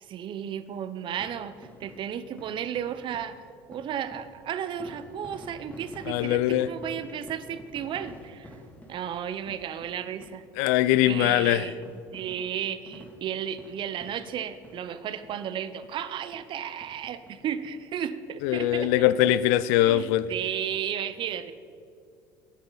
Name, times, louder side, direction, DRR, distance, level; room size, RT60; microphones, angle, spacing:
voice 1, 0.0-3.4 3.7-8.6 8.9-10.4 11.0-11.8 12.1-19.1 19.7-21.5, right 9 dB, 55° right, 0.8 m, -34 dB
sound 1, 1.1-15.0 15.2-15.4 15.8-15.9 16.3-16.5 16.8-17.8 18.2-18.3 18.5-18.6, left 1 dB, 15° left, 2.8 m, -50 dB
voice 2, 6.1-6.7 10.6-11.7 18.4-20.3, left 13 dB, 80° left, 0.4 m, -22 dB
12.5 x 10.5 x 4.0 m
supercardioid pair, 75°, 10 cm